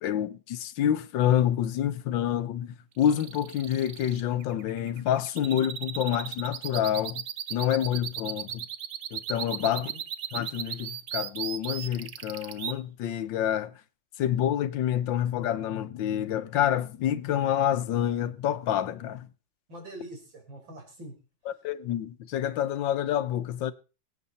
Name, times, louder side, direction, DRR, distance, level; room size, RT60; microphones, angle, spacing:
voice 1, 0.0-7.2 7.5-8.6 9.1-9.9 10.3-13.7 14.2-19.3 21.6-23.7, left 10 dB, 80° left, 1.5 m, -28 dB
sound 1, 3.0-12.7, right 10 dB, 60° right, 1.1 m, -36 dB
voice 2, 9.5-10.0 19.7-21.1, right 1 dB, 80° right, 5.0 m, -44 dB
23.0 x 8.4 x 4.0 m
omnidirectional pair, 2.0 m